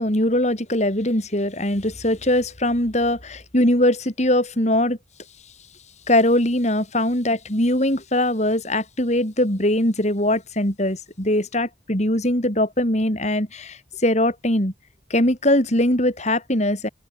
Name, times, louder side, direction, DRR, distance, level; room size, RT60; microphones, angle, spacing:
voice 1, 0.0-5.0 6.1-14.7 15.1-16.9, left 1 dB, 40° left, 6.4 m, -21 dB
open air
head